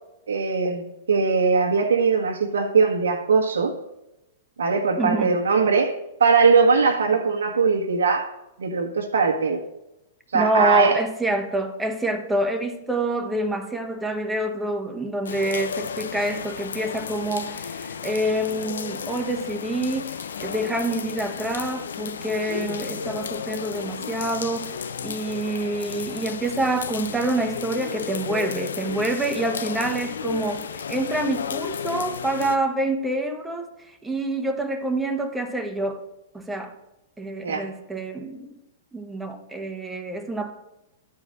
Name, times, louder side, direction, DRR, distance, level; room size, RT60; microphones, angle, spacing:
voice 1, 0.3-3.7 4.6-5.9 6.2-8.3 8.6-9.6 10.3-11.0 37.4-37.7, right 5 dB, 80° right, 2 dB, 1.4 m, -20 dB
voice 2, 5.0-5.3 10.3-33.7 34.0-36.0 36.3-36.8 37.2-38.6 38.9-40.5, right 2 dB, 10° right, 5 dB, 1.1 m, -27 dB
sound 1, 15.3-32.6, left 6 dB, 80° left, 0.6 m, -33 dB
11.0 x 4.8 x 6.6 m, 0.94 s
hypercardioid pair, 115°, 0 cm